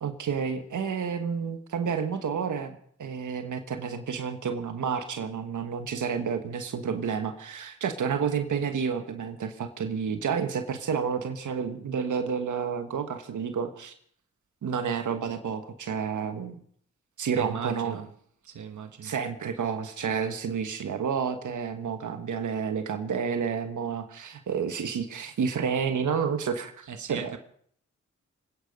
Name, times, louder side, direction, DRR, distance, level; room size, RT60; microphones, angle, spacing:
voice 1, 0.0-13.9 14.6-16.6 17.2-18.0 19.0-27.4, right 6 dB, 90° right, 1.3 m, -30 dB
voice 2, 17.3-18.1 18.4-19.1 26.9-27.4, right 7 dB, 75° right, 1.1 m, -37 dB
25.5 x 9.6 x 5.2 m
cardioid pair, 45°, 30 cm